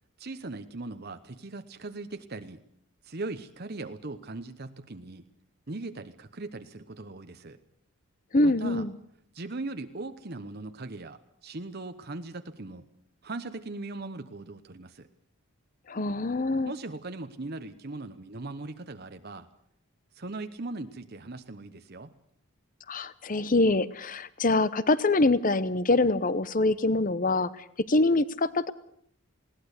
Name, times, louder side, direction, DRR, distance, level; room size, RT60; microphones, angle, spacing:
voice 1, 0.2-2.6 3.0-5.3 5.7-7.6 8.4-8.8 9.3-12.9 13.2-15.1 16.0-16.1 16.6-19.5 20.1-22.1, right 2 dB, 45° right, 9 dB, 1.0 m, -39 dB
voice 2, 8.3-8.9 15.9-16.7 22.9-28.7, left 2 dB, 40° left, 16 dB, 0.8 m, -25 dB
20.5 x 17.5 x 8.2 m, 0.70 s
head